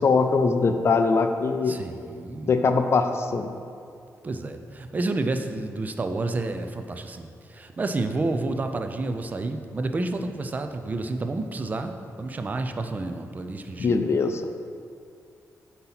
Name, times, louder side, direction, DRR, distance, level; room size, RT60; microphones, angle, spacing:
voice 1, 0.0-1.7 2.5-3.5 13.8-14.4, left 4 dB, 45° left, 7 dB, 0.4 m, -22 dB
voice 2, 1.7-2.5 4.2-14.0, right 2 dB, 25° right, 7 dB, 0.4 m, -30 dB
7.7 x 2.8 x 5.7 m, 2.4 s
wide cardioid pair, 130°, 6 cm